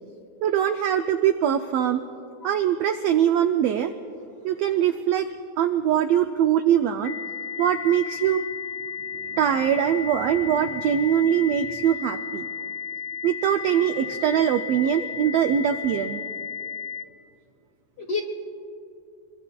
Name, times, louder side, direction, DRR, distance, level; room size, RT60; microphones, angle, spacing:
voice 1, 0.4-2.0 2.4-3.9 4.4-5.3 5.6-7.1 7.6-8.4 9.2-12.4 13.2-16.2, right 9 dB, 85° right, 6 dB, 1.4 m, -22 dB
voice 2, 2.4-2.5 12.6-12.7 15.2-15.5 18.0-18.2, left 4 dB, 45° left, 1 dB, 1.4 m, -31 dB
sound 1, 7.0-17.0, left 7 dB, 65° left, 2.8 m, -34 dB
27.5 x 22.0 x 2.3 m, 2.6 s
omnidirectional pair, 3.4 m